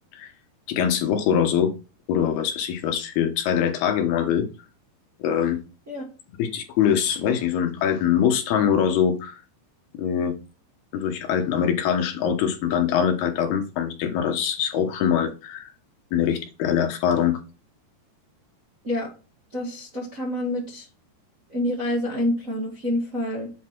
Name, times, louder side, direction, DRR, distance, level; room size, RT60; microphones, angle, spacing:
voice 1, 0.7-1.7 2.1-4.5 5.2-5.6 6.4-9.4 10.0-10.3 10.9-15.7 16.1-17.4, left 8 dB, 75° left, 5 dB, 2.8 m, -23 dB
voice 2, 19.5-20.9 21.5-23.5, left 1 dB, 35° right, -4 dB, 1.4 m, -27 dB
8.4 x 4.0 x 4.5 m, 0.32 s
omnidirectional pair, 4.9 m